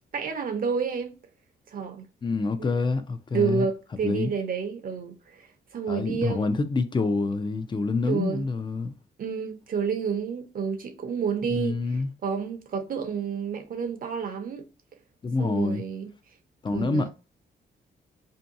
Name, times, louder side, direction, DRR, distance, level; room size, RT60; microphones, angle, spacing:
voice 1, 0.1-1.1 1.7-2.1 2.6-2.8 3.3-6.5 8.1-8.5 9.2-11.8 12.2-14.6 15.4-16.1 16.7-17.1, right 6 dB, 55° right, 0.7 m, -29 dB
voice 2, 2.2-3.7 4.0-4.3 5.9-8.9 11.5-12.1 15.2-15.8 16.6-17.1, left 3 dB, 25° left, 0.4 m, -27 dB
2.7 x 2.2 x 2.5 m
cardioid pair, 80°, 18 cm